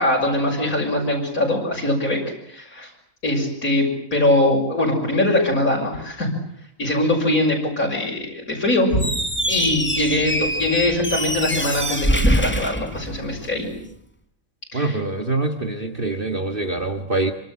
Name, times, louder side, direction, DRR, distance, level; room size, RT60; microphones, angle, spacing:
voice 1, 0.0-2.2 2.5-2.9 3.2-3.9 4.1-6.3 6.8-9.0 9.5-13.7 14.7-15.0, left 1 dB, 90° left, -1 dB, 6.9 m, -22 dB
Squeak, 8.9-13.6, equal, 10° left, 3.5 m, -24 dB
voice 2, 14.7-17.3, right 2 dB, 40° right, 6 dB, 2.1 m, -24 dB
27.5 x 25.5 x 7.7 m, 0.67 s
omnidirectional pair, 1.4 m